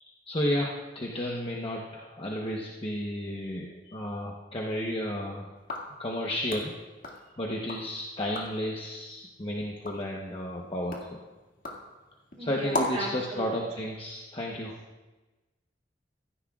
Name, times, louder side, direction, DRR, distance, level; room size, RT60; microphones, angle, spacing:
voice 1, 0.0-5.5 6.0-6.7 7.4-11.2 12.4-14.8, left 1 dB, 30° left, -2 dB, 1.0 m, -32 dB
sound 1, 5.6-7.9 8.2-8.7 9.2-13.2, left 2 dB, 50° left, 2.1 m, -38 dB
voice 2, 12.4-13.6, right 1 dB, 40° right, -6 dB, 2.9 m, -37 dB
16.0 x 14.5 x 2.4 m, 1.2 s
head